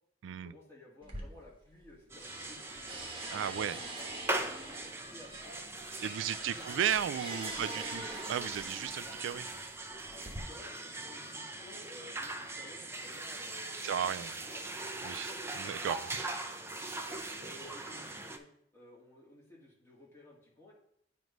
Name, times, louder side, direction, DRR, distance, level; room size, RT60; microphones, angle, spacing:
voice 1, 0.4-4.1 4.6-5.6 6.0-7.6 9.0-9.2 10.1-14.1 14.5-15.7 17.4-18.5 18.7-20.7, left 1 dB, 15° left, -4 dB, 1.9 m, -55 dB
sound 1, 1.0-1.9 2.2-9.0 9.8-10.4, right 2 dB, 30° right, 1.2 m, -45 dB
sound 2, 2.1-18.4, right 2 dB, 15° right, 0.5 m, -41 dB
voice 2, 3.3-3.8 6.0-9.4 13.8-14.3 15.0-15.3 15.6-16.3, right 9 dB, 80° right, 14 dB, 0.3 m, -35 dB
9.3 x 3.1 x 5.2 m, 0.70 s
head